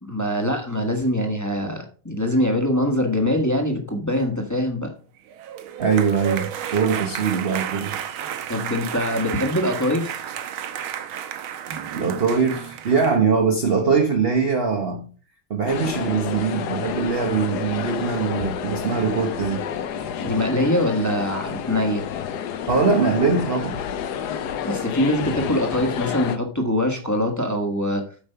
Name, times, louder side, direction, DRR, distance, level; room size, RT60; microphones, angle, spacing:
voice 1, 0.0-4.9 8.5-10.2 20.2-22.1 24.6-28.0, left 1 dB, 10° left, 1.2 m, -23 dB
sound 1, 5.3-13.2, right 9 dB, 85° right, 1.7 m, -32 dB
voice 2, 5.8-8.0 11.9-15.0 15.5-19.6 22.7-23.8, right 5 dB, 40° right, 0.8 m, -22 dB
sound 2, 15.7-26.4, left 8 dB, 65° left, 1.2 m, -30 dB
8.7 x 5.3 x 5.5 m
omnidirectional pair, 2.2 m